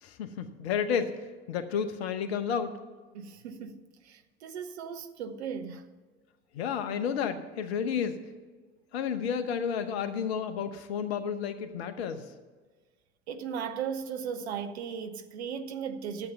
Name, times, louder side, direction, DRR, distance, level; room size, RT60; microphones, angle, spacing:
voice 1, 0.0-2.8 6.5-8.2 8.9-12.3, left 7 dB, 70° left, 1.0 m, -31 dB
voice 2, 3.1-5.8 13.3-16.3, right 7 dB, 75° right, 0.9 m, -37 dB
12.0 x 8.0 x 6.6 m
figure-of-eight pair, 60°, 33 cm